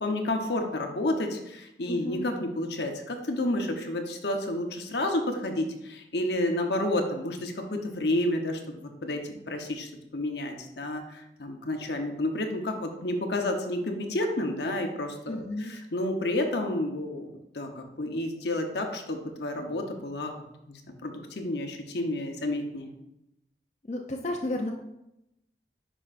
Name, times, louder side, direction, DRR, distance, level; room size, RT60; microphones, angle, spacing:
voice 1, 0.0-20.3 20.7-22.9, left 1 dB, 70° left, 4 dB, 0.9 m, -30 dB
voice 2, 1.9-2.3 15.3-15.8 23.9-24.7, left 1 dB, 40° left, 1 dB, 0.5 m, -32 dB
10.0 x 5.4 x 2.5 m, 0.88 s
head